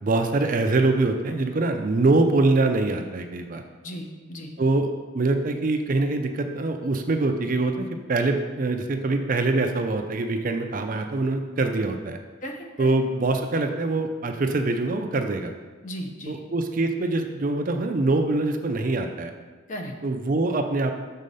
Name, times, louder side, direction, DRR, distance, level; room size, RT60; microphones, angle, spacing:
voice 1, 0.0-3.6 4.6-12.2 12.8-15.5 16.3-19.3 20.0-21.1, right 2 dB, 40° right, 5 dB, 0.4 m, -24 dB
voice 2, 3.8-4.6 12.4-12.9 15.8-16.4 19.7-19.9, equal, 35° left, 3 dB, 0.7 m, -36 dB
6.5 x 4.1 x 5.4 m, 1.4 s
head